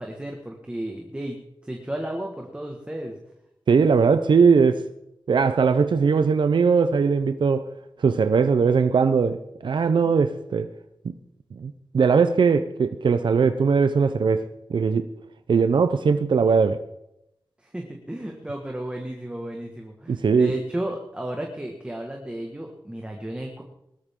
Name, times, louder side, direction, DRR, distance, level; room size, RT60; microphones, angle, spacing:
voice 1, 0.0-3.2 17.6-23.6, right 1 dB, 15° right, 1.8 m, -33 dB
voice 2, 3.7-4.9 5.3-7.7 8.0-10.7 11.0-11.1 11.5-15.1 15.5-16.8 20.1-20.5, right 5 dB, 75° right, 0.7 m, -20 dB
20.0 x 13.0 x 3.8 m
wide cardioid pair, 90°, 8 cm